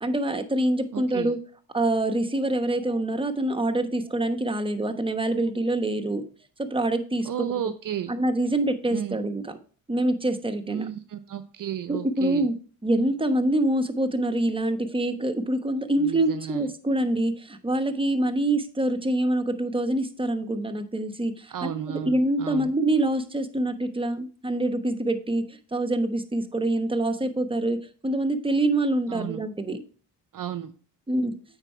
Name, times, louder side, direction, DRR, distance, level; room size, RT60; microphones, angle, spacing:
voice 1, 0.0-1.4 1.7-6.2 6.6-7.3 8.1-9.5 9.9-10.9 11.9-12.6 12.8-29.8 31.1-31.3, right 1 dB, 10° right, 7 dB, 1.0 m, -25 dB
voice 2, 0.9-1.3 7.2-8.1 8.9-9.2 10.7-12.5 16.0-16.7 21.5-22.7 29.1-29.4 30.3-30.7, right 10 dB, 50° right, 12 dB, 0.6 m, -33 dB
8.9 x 4.2 x 4.6 m, 0.41 s
supercardioid pair, 50°, 43 cm